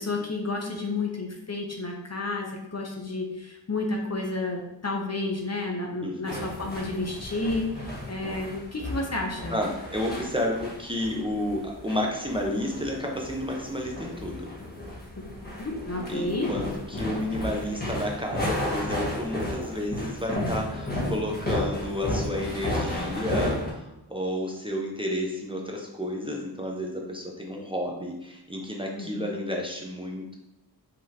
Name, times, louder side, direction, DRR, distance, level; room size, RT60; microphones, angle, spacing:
voice 1, 0.0-9.6 15.2-15.3 15.6-16.5 29.0-29.3, left 2 dB, 35° left, 1 dB, 0.8 m, -31 dB
voice 2, 6.0-6.5 9.5-14.5 16.1-30.3, left 1 dB, 10° right, -1 dB, 0.7 m, -31 dB
sound 1, 6.2-23.7, left 1 dB, 20° left, 1.5 m, -33 dB
5.0 x 3.5 x 2.9 m, 0.95 s
wide cardioid pair, 80°, 43 cm